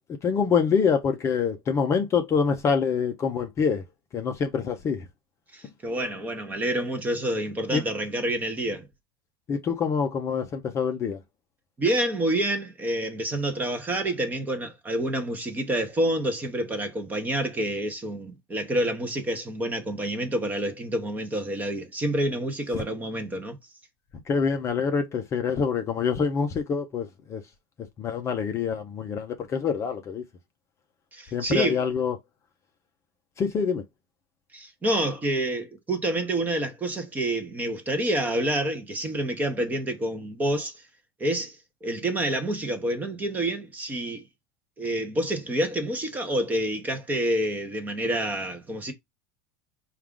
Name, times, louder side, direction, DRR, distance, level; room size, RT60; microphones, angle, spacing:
voice 1, 0.2-3.8 4.1-5.1 7.7-7.8 9.5-11.2 24.3-27.4 28.0-30.2 31.3-32.2 33.4-33.8, left 6 dB, 20° left, 0.5 m, -25 dB
voice 2, 5.5-8.9 11.8-23.6 31.1-31.8 34.5-40.8 41.2-44.3 44.8-48.9, right 1 dB, 15° right, 0.7 m, -28 dB
4.7 x 2.4 x 3.6 m
supercardioid pair, 165°, 13 cm